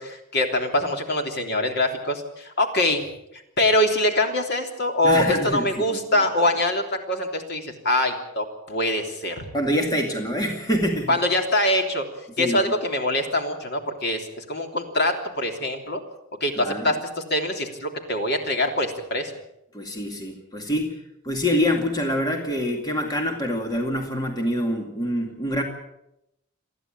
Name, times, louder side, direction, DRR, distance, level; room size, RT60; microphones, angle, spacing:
voice 1, 0.0-3.0 3.6-9.4 11.1-12.1 12.4-16.0 16.4-17.0 17.3-19.3, left 1 dB, 50° left, 4 dB, 3.3 m, -24 dB
voice 2, 5.0-6.2 9.5-11.2 12.4-12.6 16.6-16.9 19.7-25.6, equal, 20° left, 2 dB, 2.3 m, -26 dB
28.5 x 11.0 x 8.8 m, 0.84 s
head